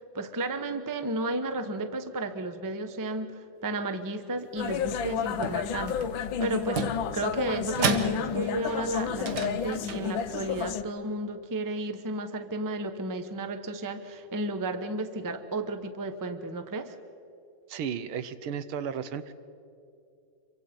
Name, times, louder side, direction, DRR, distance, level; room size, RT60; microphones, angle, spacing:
voice 1, 0.1-6.1 6.4-6.9 7.1-16.9, right 2 dB, 20° right, 9 dB, 0.6 m, -33 dB
sound 1, 4.6-10.8, left 8 dB, 70° left, 1.5 m, -31 dB
sound 2, 5.2-6.1 6.6-8.6 9.1-10.5, right 4 dB, 55° right, 1.8 m, -33 dB
voice 2, 17.7-19.3, right 7 dB, 80° right, 12 dB, 1.8 m, -34 dB
27.0 x 24.0 x 5.3 m, 2.5 s
omnidirectional pair, 2.3 m